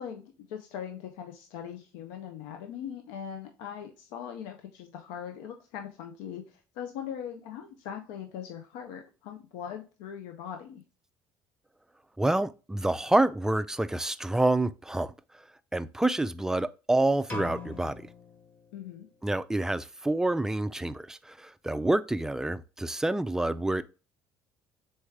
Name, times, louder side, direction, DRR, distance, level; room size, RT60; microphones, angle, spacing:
voice 1, 0.0-10.8 18.7-19.1, left 8 dB, 85° left, 0.6 m, -40 dB
voice 2, 12.2-15.1 15.7-18.0 19.2-23.8, right 2 dB, 5° right, 0.3 m, -27 dB
sound 1, 17.3-19.2, left 4 dB, 20° left, 1.2 m, -42 dB
4.3 x 3.5 x 3.2 m
supercardioid pair, 90°, 8 cm